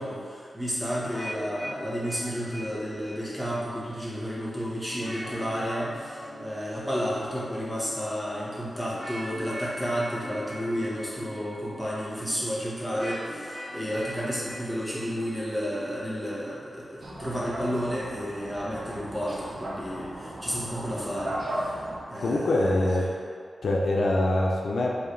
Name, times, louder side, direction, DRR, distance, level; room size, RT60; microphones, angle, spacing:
voice 1, 0.0-21.8 22.1-22.9, equal, 5° right, -7 dB, 1.1 m, -32 dB
sound 1, 1.0-16.9, equal, 20° left, 1.2 m, -42 dB
sound 2, 17.0-22.0, right 1 dB, 70° right, 0.6 m, -36 dB
voice 2, 22.2-23.1 23.6-25.0, left 1 dB, 80° left, -2 dB, 0.5 m, -24 dB
4.8 x 2.9 x 3.1 m, 2.1 s
wide cardioid pair, 100°, 0 cm